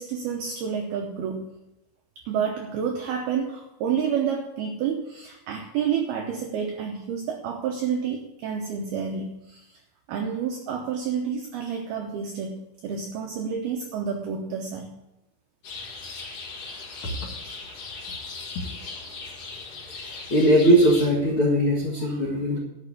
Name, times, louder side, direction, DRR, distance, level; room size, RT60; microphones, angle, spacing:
voice 1, 0.0-1.5 2.2-9.8 10.1-14.9, right 7 dB, 85° right, 3 dB, 2.2 m, -29 dB
sound 1, 15.6-21.1, left 4 dB, 50° left, 1.9 m, -38 dB
voice 2, 20.3-22.6, right 1 dB, 85° left, -2 dB, 1.1 m, -19 dB
11.5 x 6.2 x 8.3 m, 0.94 s
omnidirectional pair, 5.8 m